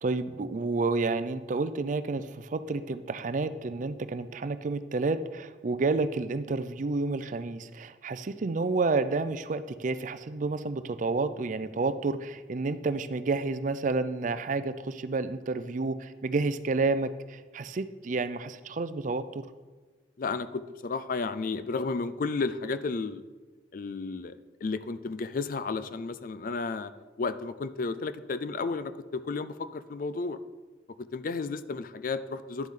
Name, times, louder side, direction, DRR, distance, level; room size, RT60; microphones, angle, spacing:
voice 1, 0.0-19.4, right 3 dB, 45° right, 12 dB, 0.4 m, -30 dB
voice 2, 20.2-23.2 23.7-26.9 27.2-30.4 31.0-32.7, left 4 dB, 50° left, 13 dB, 0.4 m, -33 dB
11.0 x 7.5 x 3.7 m, 1.3 s
head